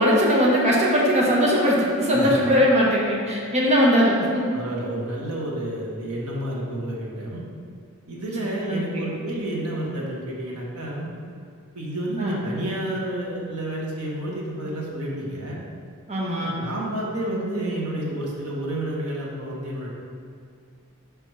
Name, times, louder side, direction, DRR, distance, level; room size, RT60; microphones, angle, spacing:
voice 1, 0.0-4.4 8.7-9.0 12.2-12.4 16.1-16.5, equal, 30° right, -4 dB, 1.1 m, -20 dB
voice 2, 4.5-7.4 8.1-11.1 11.7-15.6 16.4-19.9, right 1 dB, 90° right, -3 dB, 1.3 m, -30 dB
5.2 x 4.7 x 4.7 m, 2.2 s
head